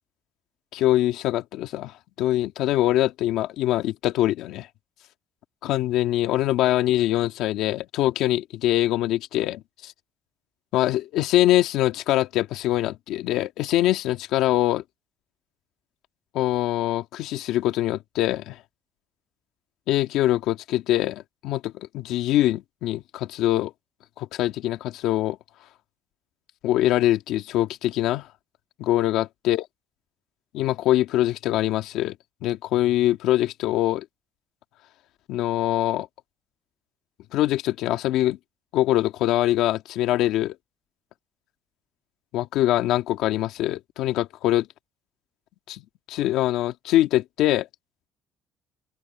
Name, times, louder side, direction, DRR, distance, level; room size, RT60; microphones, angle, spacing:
voice 1, 0.7-4.7 5.6-9.9 10.7-14.8 16.3-18.6 19.9-23.7 24.2-25.4 26.6-28.3 28.8-29.6 30.5-32.2 32.4-34.1 35.3-36.1 37.3-38.4 38.7-40.5 42.3-44.7 45.7-45.8 46.1-47.7, left 14 dB, 65° left, 1.9 m, -23 dB
open air
cardioid pair, 165°, 0 cm